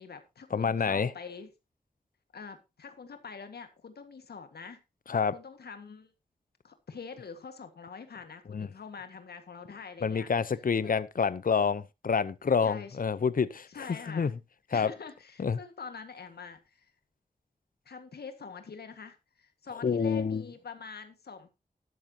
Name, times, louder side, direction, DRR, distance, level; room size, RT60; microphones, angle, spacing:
voice 1, 0.0-1.5 2.3-4.8 5.3-6.1 6.6-10.3 10.8-11.0 12.6-13.0 13.7-14.3 14.7-16.9 17.9-21.5, left 5 dB, 85° left, 1.8 m, -45 dB
voice 2, 0.5-1.1 5.1-5.3 8.5-8.7 10.0-14.3 14.7-14.9 15.4-15.6 19.8-20.4, left 6 dB, 60° left, 0.8 m, -28 dB
12.5 x 11.5 x 2.9 m
cardioid pair, 40°, 16 cm